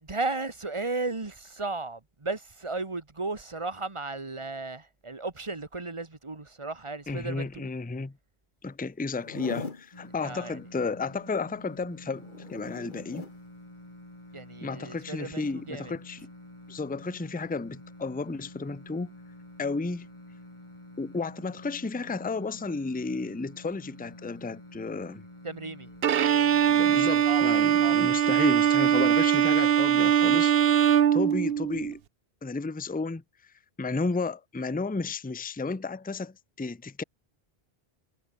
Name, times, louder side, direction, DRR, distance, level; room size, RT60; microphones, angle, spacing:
voice 1, 0.0-7.7 10.2-10.6 14.3-15.9 25.4-25.9 26.5-28.0, right 3 dB, 30° right, 1.7 m, -35 dB
voice 2, 7.1-8.2 8.6-13.3 14.6-16.3 16.7-19.1 19.6-20.1 21.0-25.2 26.7-32.0 32.4-33.5 33.8-37.0, left 3 dB, 10° left, 0.5 m, -33 dB
Zipper (clothing), 9.1-9.9 12.0-13.4 15.2-15.5, left 4 dB, 55° left, 2.0 m, -40 dB
sound 1, 9.9-26.8, left 1 dB, 30° left, 3.9 m, -49 dB
Bowed string instrument, 26.0-31.9, right 9 dB, 70° right, 1.0 m, -22 dB
omnidirectional pair, 1.0 m